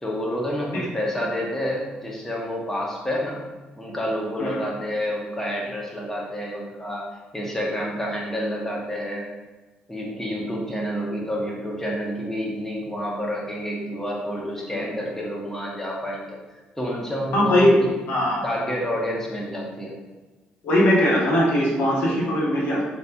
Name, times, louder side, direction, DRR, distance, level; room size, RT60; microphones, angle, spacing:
voice 1, 0.0-3.4 3.8-7.1 7.3-9.3 9.9-16.4 16.7-17.7 18.4-19.9, equal, 10° left, -3 dB, 1.0 m, -29 dB
voice 2, 17.3-17.8 18.1-18.4 20.6-22.8, left 1 dB, 65° left, -5 dB, 1.0 m, -20 dB
3.3 x 2.8 x 3.3 m, 1.2 s
hypercardioid pair, 50°, 4 cm